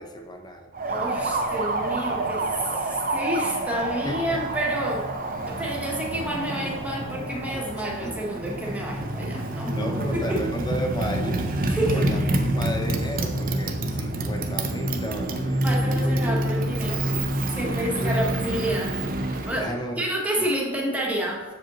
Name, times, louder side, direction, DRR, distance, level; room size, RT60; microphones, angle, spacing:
voice 1, 0.0-0.7 4.0-4.5 8.0-8.4 8.7-8.8 9.6-11.5 11.9-16.4 17.1-17.3 17.6-18.3 19.6-20.1 20.4-20.5, equal, 20° left, 3 dB, 0.7 m, -33 dB
Motorcycle, 0.7-19.7, right 1 dB, 40° right, 0.5 m, -27 dB
voice 2, 0.9-5.0 5.5-9.9 10.1-10.4 11.7-12.1 15.6-19.0 19.4-19.7 20.0-21.4, right 1 dB, 5° right, -3 dB, 1.1 m, -29 dB
7.0 x 5.0 x 3.0 m, 1.2 s
head